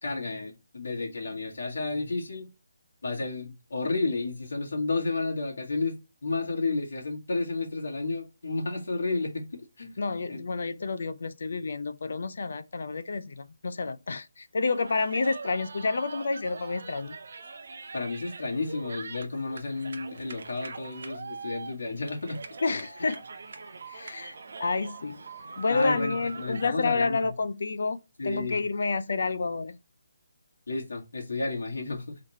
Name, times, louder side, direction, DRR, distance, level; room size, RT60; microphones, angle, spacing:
voice 1, 0.0-2.5 3.0-6.0 6.2-9.9 10.3-10.4 17.9-22.4 25.7-27.3 28.2-28.6 30.7-32.2, left 3 dB, 60° left, 2.0 m, -31 dB
voice 2, 10.0-17.2 22.6-23.2 23.9-25.2 25.6-28.0 28.2-29.8, left 4 dB, 45° left, 0.4 m, -29 dB
sound 1, 14.6-26.7, right 4 dB, 45° right, 0.7 m, -43 dB
4.0 x 3.1 x 4.2 m
hypercardioid pair, 180°, 0 cm